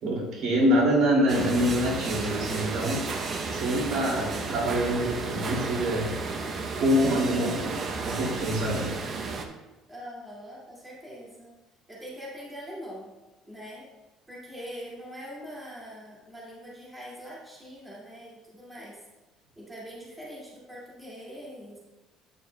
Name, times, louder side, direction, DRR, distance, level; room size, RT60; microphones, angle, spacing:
voice 1, 0.0-3.0 3.5-6.1 6.8-8.9, equal, 65° right, -3 dB, 2.4 m, -25 dB
sound 1, 1.3-9.5, right 4 dB, 35° right, 0.7 m, -33 dB
voice 2, 9.9-11.5 11.9-13.1 13.4-13.9 14.3-19.0 19.6-21.8, equal, 10° right, -6 dB, 2.1 m, -43 dB
9.4 x 6.4 x 2.2 m, 1.1 s
cardioid pair, 140°, 0 cm